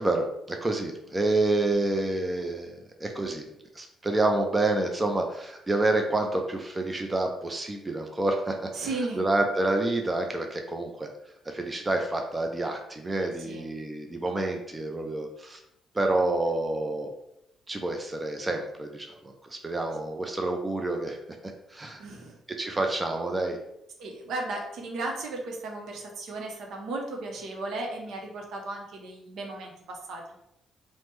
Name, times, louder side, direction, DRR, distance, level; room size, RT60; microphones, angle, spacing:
voice 1, 0.0-3.5 3.7-11.1 11.5-15.6 15.9-17.1 17.7-21.2 21.7-22.0 22.6-23.6, right 2 dB, 20° right, 3 dB, 0.4 m, -28 dB
voice 2, 8.7-9.2 13.4-13.6 22.0-22.4 24.0-30.2, right 2 dB, 75° right, 1 dB, 0.6 m, -35 dB
3.2 x 2.1 x 3.1 m, 0.79 s
cardioid pair, 90°, 0 cm